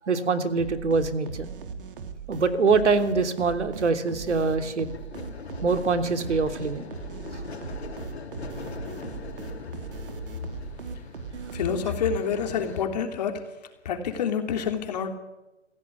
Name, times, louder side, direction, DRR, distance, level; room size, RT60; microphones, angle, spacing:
voice 1, 0.1-1.5 2.3-4.9 5.6-6.9 7.3-7.4, right 4 dB, 70° right, 9 dB, 3.1 m, -24 dB
sound 1, 0.6-12.2, right 5 dB, 45° right, 3.1 m, -39 dB
sound 2, 3.3-12.9, left 5 dB, 60° left, 4.2 m, -42 dB
voice 2, 11.5-13.4 13.9-15.1, left 7 dB, 35° left, 5 dB, 3.3 m, -27 dB
29.5 x 16.0 x 9.7 m, 1.1 s
hypercardioid pair, 160°, 36 cm